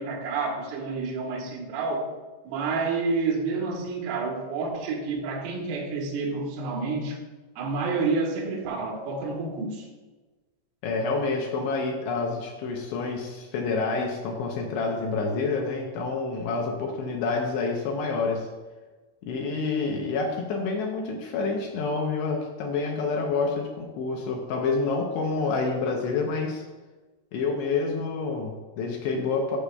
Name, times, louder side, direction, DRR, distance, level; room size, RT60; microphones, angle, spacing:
voice 1, 0.0-2.1 2.5-7.2 7.6-9.9, right 4 dB, 90° right, 1 dB, 3.7 m, -29 dB
voice 2, 10.8-18.5 19.2-26.7 27.3-29.6, left 4 dB, 75° left, 1 dB, 2.6 m, -28 dB
14.0 x 6.5 x 2.3 m, 1.2 s
omnidirectional pair, 5.5 m